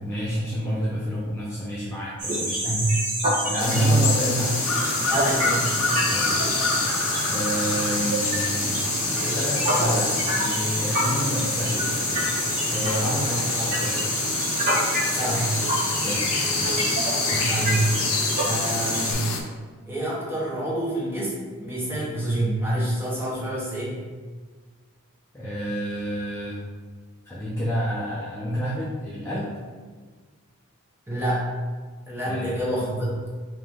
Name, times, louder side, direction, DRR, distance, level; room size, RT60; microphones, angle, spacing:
voice 1, 0.0-2.6 3.4-4.6 6.0-6.7 7.3-8.9 9.2-14.0 16.0-16.2 16.5-16.9 25.3-26.6 27.2-29.5 32.3-32.6, equal, 10° left, -8 dB, 0.5 m, -30 dB
sound 1, 2.2-19.1, right 1 dB, 35° right, 1.2 m, -27 dB
voice 2, 2.6-3.0 3.3-4.0 5.1-5.7 13.3-13.4 15.1-15.5 17.3-17.9 18.4-19.3 19.9-24.0 31.1-31.4 32.1-33.2, right 1 dB, 10° right, -6 dB, 0.9 m, -26 dB
sound 2, 3.6-19.4, left 4 dB, 70° left, 0.5 m, -28 dB
3.8 x 3.0 x 3.5 m, 1.4 s
head